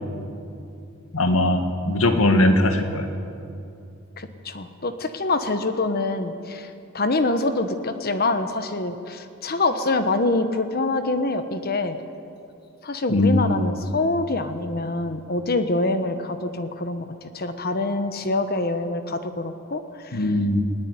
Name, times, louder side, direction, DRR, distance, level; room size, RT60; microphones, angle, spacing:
voice 1, 1.1-3.1 13.1-13.6 20.1-20.6, left 1 dB, 75° left, 6 dB, 1.9 m, -20 dB
voice 2, 4.2-12.0 12.8-20.3, left 2 dB, 45° left, 9 dB, 1.2 m, -25 dB
20.0 x 18.0 x 9.6 m, 2.6 s
head